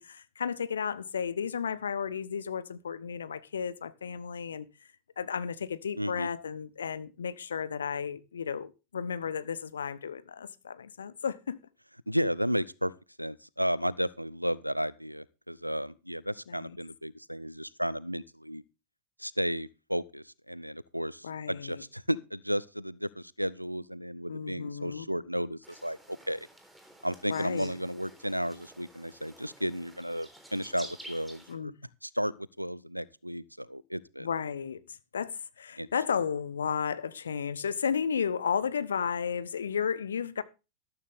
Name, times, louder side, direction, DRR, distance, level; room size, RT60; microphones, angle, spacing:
voice 1, 0.0-4.7 5.2-11.6 16.5-16.8 21.2-21.8 24.3-25.0 27.3-27.7 31.5-31.7 34.2-40.4, left 7 dB, 70° left, 1.0 m, -33 dB
voice 2, 6.0-6.3 12.1-12.9 13.2-18.6 19.2-26.5 27.0-31.7 32.0-34.3 35.8-35.9, equal, 90° right, 0.6 m, -33 dB
sound 1, 25.6-31.5, right 1 dB, 5° right, 3.7 m, -51 dB
13.0 x 13.0 x 3.5 m
figure-of-eight pair, 90°, 0 cm